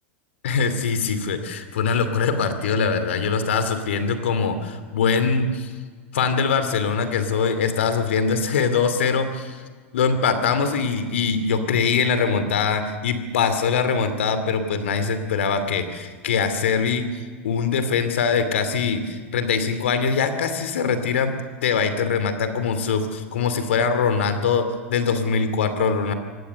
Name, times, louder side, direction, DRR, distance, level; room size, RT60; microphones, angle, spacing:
voice 1, 0.4-5.7 6.1-9.6 9.9-17.0 17.4-26.1, left 5 dB, 70° left, 9 dB, 2.6 m, -22 dB
25.5 x 19.0 x 6.9 m, 1.5 s
figure-of-eight pair, 85°, 7 cm